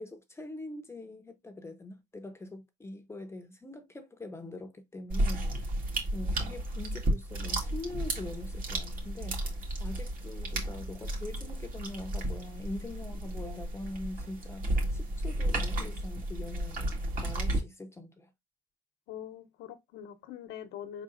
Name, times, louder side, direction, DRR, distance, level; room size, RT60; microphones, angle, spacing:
voice 1, 0.0-5.7 6.1-9.5 9.8-18.3, left 2 dB, 15° left, 0.7 m, -43 dB
sound 1, 5.1-17.6, right 1 dB, 55° right, 1.8 m, -33 dB
voice 2, 19.1-21.0, left 10 dB, 85° left, 0.9 m, -43 dB
4.6 x 3.9 x 2.5 m
cardioid pair, 110°, 17 cm